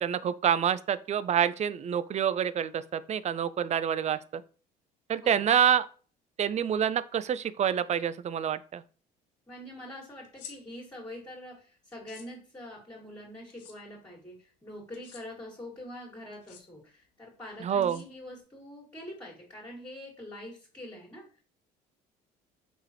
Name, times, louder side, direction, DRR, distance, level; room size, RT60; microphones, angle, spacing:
voice 1, 0.0-4.4 5.1-5.9 6.4-8.8 17.6-18.0, right 8 dB, 35° right, 0.4 m, -27 dB
voice 2, 9.5-21.4, left 1 dB, 15° left, 2.2 m, -45 dB
sound 1, 10.2-10.6 11.9-12.3 13.5-13.8 14.9-15.2 16.3-16.6 17.8-18.4, left 8 dB, 80° left, 0.8 m, -49 dB
5.0 x 3.6 x 2.9 m
hypercardioid pair, 60°, 21 cm